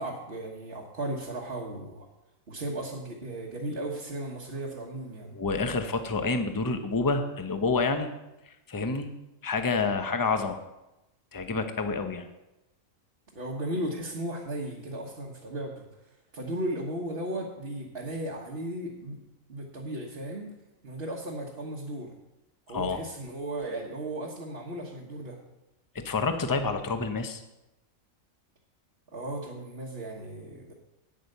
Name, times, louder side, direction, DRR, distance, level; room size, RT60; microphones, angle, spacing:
voice 1, 0.0-2.1 2.5-5.3 13.3-15.8 16.3-19.2 19.5-20.5 20.8-22.1 22.7-25.4 29.1-30.7, right 1 dB, 45° right, -3 dB, 1.5 m, -35 dB
voice 2, 5.3-8.1 8.7-9.1 9.4-10.6 11.3-12.3 22.7-23.0 25.9-27.4, left 4 dB, 20° left, 7 dB, 0.7 m, -28 dB
9.0 x 8.8 x 6.7 m, 0.95 s
omnidirectional pair, 1.4 m